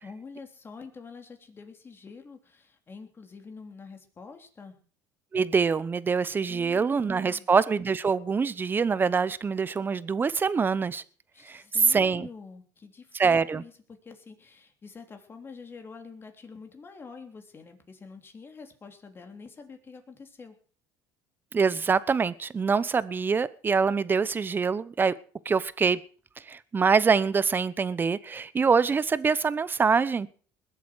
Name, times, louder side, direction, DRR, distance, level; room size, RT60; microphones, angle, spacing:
voice 1, 0.0-4.8 6.4-7.5 11.3-20.5, left 5 dB, 25° left, 5 dB, 3.3 m, -46 dB
voice 2, 5.3-11.0 11.4-11.6 11.9-12.3 13.1-13.6 21.5-25.1 25.4-26.0 26.5-30.3, right 5 dB, 25° right, 18 dB, 0.9 m, -25 dB
21.0 x 8.3 x 6.3 m, 0.43 s
supercardioid pair, 110°, 8 cm